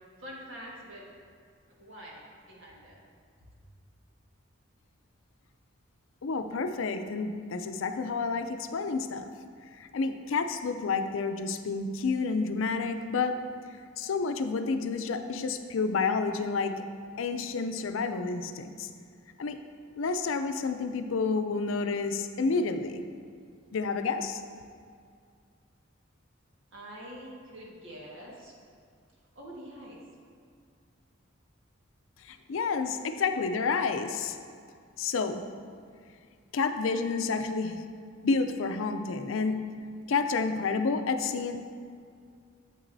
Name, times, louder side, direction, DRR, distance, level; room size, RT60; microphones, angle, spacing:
voice 1, 0.2-1.0 1.8-3.0 26.7-28.5 29.3-30.0, equal, 75° right, -4 dB, 1.7 m, -45 dB
voice 2, 6.2-9.3 9.8-13.4 14.0-16.7 17.2-18.9 19.4-19.6 20.0-23.0 23.7-24.4 32.3-34.4 35.0-35.4 36.5-37.8 38.2-39.6 40.1-41.6, left 4 dB, 80° left, 8 dB, 0.5 m, -29 dB
8.8 x 7.6 x 2.7 m, 2.1 s
head